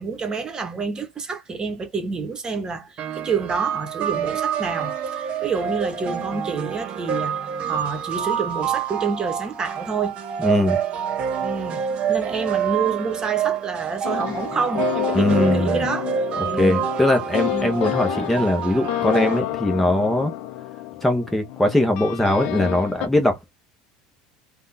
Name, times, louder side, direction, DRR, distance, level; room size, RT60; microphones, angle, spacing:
voice 1, 0.0-7.3 7.6-10.2 11.4-11.8 12.1-16.1 16.4-16.9 17.5-17.8, right 5 dB, 30° right, 1.1 m, -28 dB
sound 1, 3.0-19.4, right 8 dB, 45° right, 0.7 m, -27 dB
voice 2, 10.4-10.8 15.1-15.9 16.6-20.3 21.0-23.4, left 1 dB, 10° left, 0.8 m, -21 dB
sound 2, 14.0-23.1, left 15 dB, 65° left, 0.4 m, -29 dB
3.5 x 2.3 x 2.6 m
hypercardioid pair, 80°, 3 cm